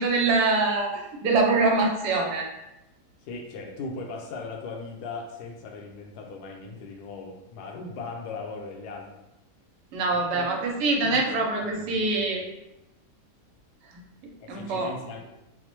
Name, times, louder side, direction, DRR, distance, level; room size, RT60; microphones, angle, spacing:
voice 1, 0.0-2.5 9.9-12.4 13.9-14.9, right 3 dB, 90° right, 1 dB, 1.3 m, -24 dB
voice 2, 3.2-9.1 10.1-10.5 11.0-11.2 11.8-12.4 14.4-15.2, left 4 dB, 80° left, 1 dB, 1.1 m, -38 dB
4.3 x 2.1 x 2.9 m, 0.91 s
omnidirectional pair, 1.8 m